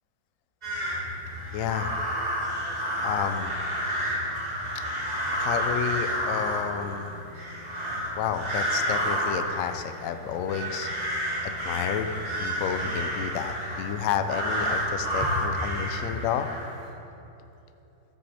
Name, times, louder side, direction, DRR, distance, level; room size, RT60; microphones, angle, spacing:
sound 1, 0.6-16.9, equal, 25° right, 1.6 m, -30 dB
voice 1, 1.5-1.9 3.0-3.5 5.4-7.1 8.2-11.2 11.4-12.1 12.4-16.5, left 8 dB, 85° left, 8 dB, 0.7 m, -30 dB
14.0 x 7.6 x 3.4 m, 2.9 s
omnidirectional pair, 2.0 m